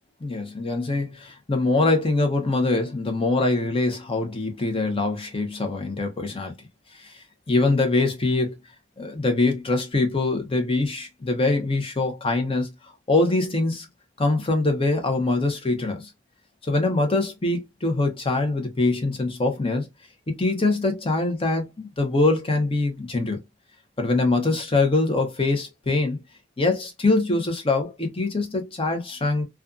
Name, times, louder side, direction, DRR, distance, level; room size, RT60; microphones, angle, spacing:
voice 1, 0.2-6.5 6.9-8.5 9.0-13.9 14.2-16.1 16.6-19.9 20.3-23.4 24.0-26.2 26.6-29.4, left 2 dB, 30° left, 0.7 m, -23 dB
2.5 x 2.3 x 2.3 m
head